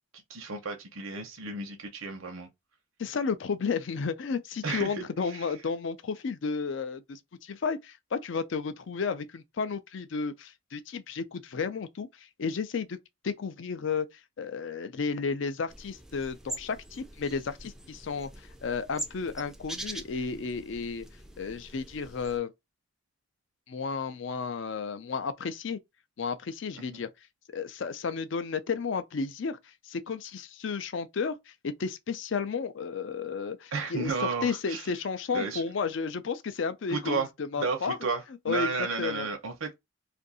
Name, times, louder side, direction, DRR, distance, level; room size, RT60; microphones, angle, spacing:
voice 1, 0.3-2.5 4.6-5.0 5.3-5.5 26.8-27.0 33.7-34.9 35.3-35.6 36.9-37.3 37.6-39.7, right 4 dB, 90° right, 0.8 m, -33 dB
voice 2, 3.0-13.0 13.2-14.1 14.4-21.1 21.4-22.5 23.7-25.8 26.2-27.1 27.5-37.3 37.5-38.0 38.5-38.7 39.0-39.3, left 5 dB, 65° left, 0.4 m, -33 dB
sound 1, 15.7-22.4, right 1 dB, 5° right, 0.4 m, -43 dB
2.6 x 2.5 x 3.9 m
head